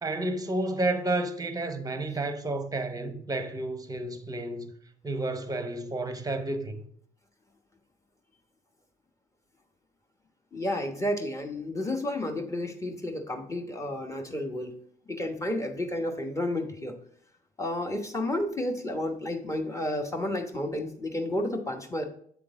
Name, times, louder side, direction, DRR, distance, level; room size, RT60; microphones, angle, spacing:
voice 1, 0.0-4.7 5.0-6.8, right 2 dB, 20° right, 0.8 m, -31 dB
voice 2, 10.5-14.8 15.1-16.9 17.6-22.0, left 1 dB, 15° left, 1.1 m, -31 dB
8.1 x 3.7 x 3.6 m
supercardioid pair, 70°, 20 cm